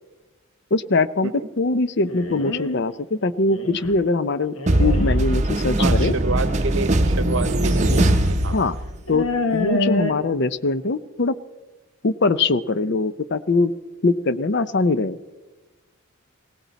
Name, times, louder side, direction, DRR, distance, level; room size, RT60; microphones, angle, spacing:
voice 1, 0.7-1.3 1.6-6.1 8.5-8.8 9.1-9.3 9.5-11.3 12.0-13.7 14.0-15.2, left 3 dB, 50° left, 14 dB, 0.6 m, -22 dB
sound 1, 2.1-2.8 3.5-3.9 4.5-5.1 6.3-6.5 7.6-8.2 8.5-8.6 9.1-10.1, left 2 dB, 70° left, 1.4 m, -26 dB
sound 2, 4.7-9.1, right 1 dB, 30° right, 0.8 m, -20 dB
voice 2, 5.8-8.6, right 4 dB, 60° right, 12 dB, 0.9 m, -29 dB
19.5 x 17.5 x 4.1 m, 1.2 s
head